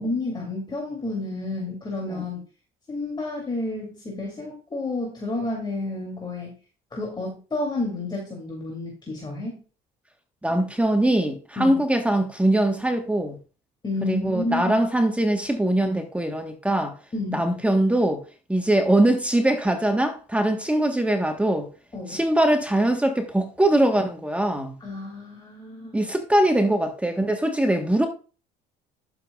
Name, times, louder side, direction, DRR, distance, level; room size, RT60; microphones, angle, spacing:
voice 1, 0.0-2.4 2.9-6.6 6.9-9.6 11.6-11.8 13.8-14.8 17.1-17.5 21.9-22.2 24.8-25.9, left 2 dB, 25° left, 2.9 m, -30 dB
voice 2, 10.4-13.4 14.1-16.9 17.3-18.2 18.5-21.7 22.1-24.7 25.9-28.1, right 1 dB, 5° right, 1.3 m, -22 dB
12.0 x 7.0 x 2.4 m
supercardioid pair, 85°, 17 cm